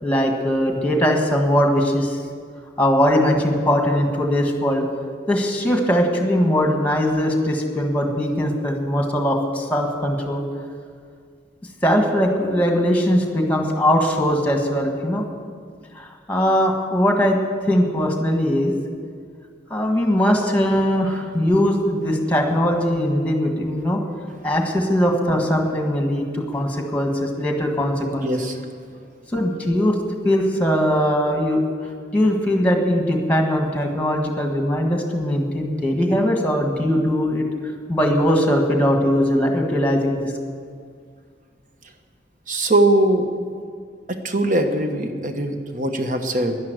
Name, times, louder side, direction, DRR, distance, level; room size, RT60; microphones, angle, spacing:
voice 1, 0.0-2.2 2.8-4.9 5.3-10.5 11.8-15.2 15.9-17.4 17.6-18.7 19.7-24.0 24.4-28.3 29.3-30.0 30.2-31.6 32.1-37.4 37.9-40.3, equal, 10° left, 2 dB, 1.5 m, -20 dB
voice 2, 28.2-28.6 42.5-43.3 44.1-46.6, right 1 dB, 45° right, 6 dB, 1.1 m, -21 dB
11.0 x 11.0 x 7.9 m, 2.1 s
head